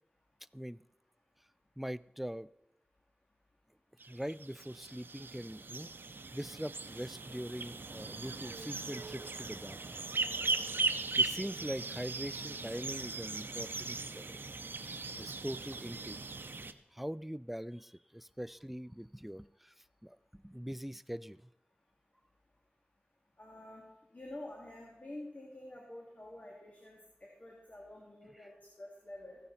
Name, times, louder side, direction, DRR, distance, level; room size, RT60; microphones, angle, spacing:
voice 1, 0.5-0.8 1.8-2.5 4.1-5.9 6.3-10.0 11.2-14.4 14.8-16.2 16.5-21.5, equal, 5° right, 18 dB, 0.3 m, -42 dB
sound 1, 4.0-16.7, right 3 dB, 75° right, 0.6 m, -38 dB
voice 2, 23.4-23.8 24.1-29.4, left 1 dB, 45° left, -2 dB, 2.4 m, -48 dB
15.0 x 9.9 x 4.1 m, 0.90 s
wide cardioid pair, 50°, 4 cm